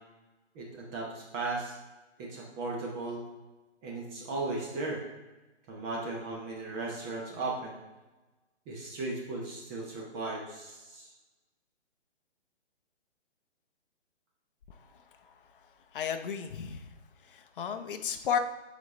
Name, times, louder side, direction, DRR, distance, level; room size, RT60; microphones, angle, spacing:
voice 1, 0.5-1.7 2.2-3.2 3.8-5.0 5.7-7.8 8.7-11.1, right 3 dB, 20° right, -3 dB, 0.9 m, -36 dB
voice 2, 15.9-16.8 17.3-18.4, left 8 dB, 50° left, 7 dB, 0.6 m, -32 dB
9.0 x 4.2 x 3.2 m, 1.1 s
hypercardioid pair, 145°, 35 cm